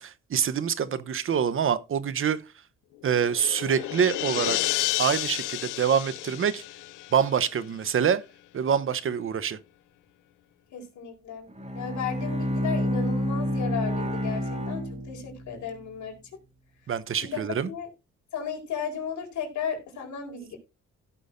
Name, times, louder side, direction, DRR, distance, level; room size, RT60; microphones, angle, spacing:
voice 1, 0.0-2.4 3.0-4.6 5.0-6.6 7.1-8.2 8.5-9.6 16.9-17.7, right 7 dB, 45° right, 0.9 m, -25 dB
sound 1, 3.0-7.6, left 18 dB, 90° left, 0.6 m, -31 dB
voice 2, 10.7-11.5 11.7-16.2 17.2-17.9 18.3-20.6, left 6 dB, 70° left, 4.3 m, -34 dB
Bowed string instrument, 11.5-15.6, equal, 20° right, 3.1 m, -29 dB
16.5 x 6.2 x 2.6 m
cardioid pair, 90°, 30 cm